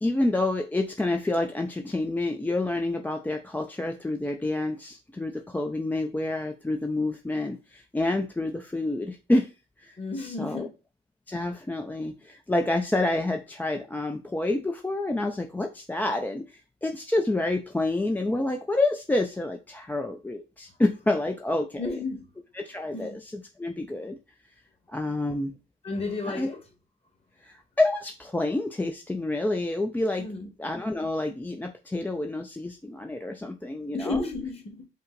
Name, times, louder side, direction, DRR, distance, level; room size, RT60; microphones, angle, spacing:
voice 1, 0.0-9.5 9.8-10.7 11.3-16.4 16.8-21.8 22.6-23.1 23.6-24.2 24.9-25.5 26.3-26.5 27.4-30.3 30.6-34.2, left 2 dB, 10° left, 0.4 m, -28 dB
voice 2, 10.0-10.7 21.8-22.3 22.9-23.2 25.2-25.3 25.8-26.6 30.2-30.5 33.9-34.9, left 3 dB, 30° left, 1.5 m, -33 dB
5.2 x 2.1 x 3.9 m
cardioid pair, 90°, 20 cm